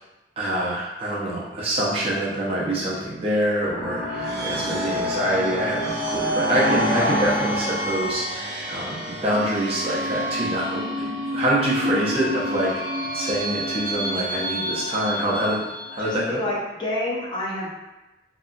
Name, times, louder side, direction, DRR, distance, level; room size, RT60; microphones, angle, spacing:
voice 1, 0.4-12.7 13.1-15.6 15.9-16.4, right 1 dB, 35° right, -6 dB, 0.6 m, -25 dB
voice 2, 2.6-2.9 4.2-4.4 11.8-12.0 16.0-17.7, left 1 dB, 25° left, -5 dB, 0.6 m, -29 dB
sound 1, 3.6-16.1, equal, 75° right, 0.7 m, -28 dB
2.8 x 2.3 x 2.4 m, 1.0 s
head